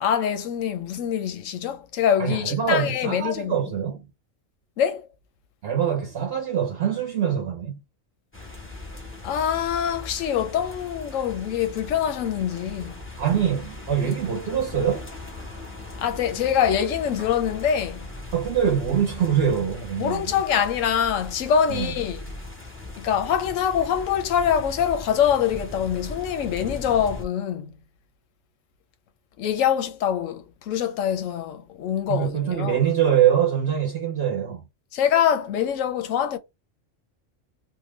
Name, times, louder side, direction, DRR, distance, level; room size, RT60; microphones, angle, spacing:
voice 1, 0.0-3.5 4.8-5.1 9.2-13.0 14.0-14.1 16.0-18.1 20.0-22.3 23.0-27.7 29.4-32.8 34.9-36.4, left 8 dB, 85° left, 1.0 m, -24 dB
voice 2, 2.2-4.1 5.6-7.8 13.2-15.1 18.3-20.3 21.7-21.9 32.1-34.6, right 9 dB, 60° right, 0.8 m, -24 dB
sound 1, 8.3-27.2, left 2 dB, 10° left, 0.8 m, -39 dB
3.6 x 2.1 x 3.1 m
omnidirectional pair, 1.3 m